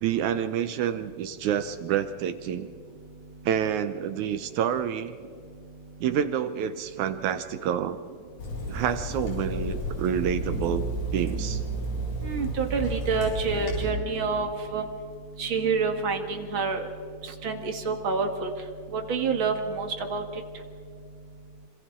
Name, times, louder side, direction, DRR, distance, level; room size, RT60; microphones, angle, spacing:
voice 1, 0.0-2.7 3.5-5.2 6.0-8.0 8.7-10.9 11.1-11.6, right 9 dB, 75° right, 10 dB, 1.9 m, -28 dB
Water tap faucet / Sink (filling or washing), 8.4-13.9, right 2 dB, 80° left, 7.5 m, -32 dB
voice 2, 12.2-14.8 15.4-16.8 17.2-18.5 18.9-20.2, right 4 dB, 45° right, 5 dB, 1.9 m, -28 dB
26.5 x 26.5 x 3.7 m, 2.2 s
omnidirectional pair, 3.8 m